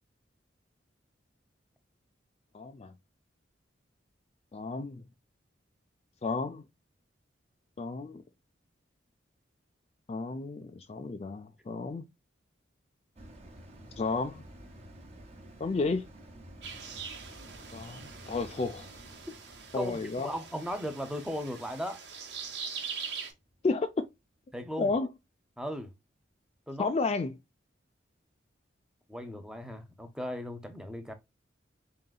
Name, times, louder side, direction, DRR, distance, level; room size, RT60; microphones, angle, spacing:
voice 1, 2.5-2.9 4.5-5.0 6.2-6.6 7.8-8.2 10.1-12.1 14.0-14.4 15.6-16.1 17.7-18.9 19.7-20.3 23.6-24.1 24.8-25.1 26.8-27.4, left 3 dB, 35° left, 0.4 m, -32 dB
sound 1, 13.1-23.8 24.3-24.4, right 1 dB, 35° right, 1.1 m, -52 dB
sound 2, 16.6-23.3, right 6 dB, 65° right, 1.1 m, -43 dB
voice 2, 19.7-22.0 24.5-24.9 25.6-25.9 26.7-26.9 29.1-31.1, equal, 5° right, 0.7 m, -37 dB
3.8 x 3.8 x 2.3 m
head